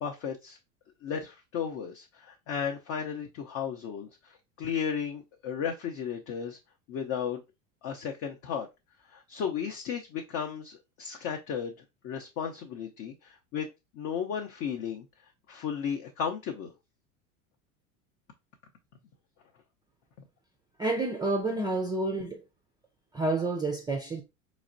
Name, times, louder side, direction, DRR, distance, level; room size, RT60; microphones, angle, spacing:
voice 1, 0.0-0.6 1.0-6.6 6.9-7.4 7.8-8.7 9.1-11.7 12.0-13.7 13.9-16.7, left 7 dB, 50° left, 0.7 m, -34 dB
voice 2, 20.8-22.4 23.1-24.2, right 2 dB, 10° right, 0.3 m, -29 dB
4.0 x 3.1 x 2.6 m
hypercardioid pair, 90°, 41 cm